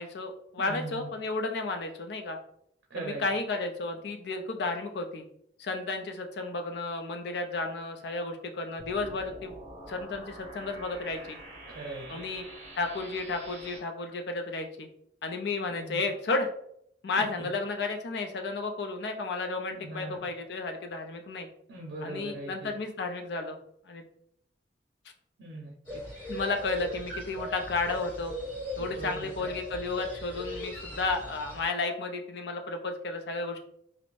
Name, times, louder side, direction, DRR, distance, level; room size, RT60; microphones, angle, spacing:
voice 1, 0.0-2.4 3.0-5.2 5.6-9.5 9.9-11.4 12.1-12.4 12.7-14.9 15.2-16.5 17.0-21.5 22.0-23.6 23.9-24.0 26.3-28.3 28.8-33.6, left 3 dB, 65° left, 5 dB, 0.4 m, -33 dB
voice 2, 0.6-1.1 2.9-3.2 11.7-12.1 15.7-16.0 17.4-17.5 19.8-20.2 21.7-22.7 25.4-26.0 28.8-29.5, right 2 dB, 80° right, -2 dB, 0.6 m, -40 dB
sound 1, 8.8-13.8, right 1 dB, 40° right, 0.7 m, -46 dB
sound 2, 25.9-31.7, left 1 dB, 25° left, 1.4 m, -39 dB
2.5 x 2.0 x 3.0 m, 0.70 s
head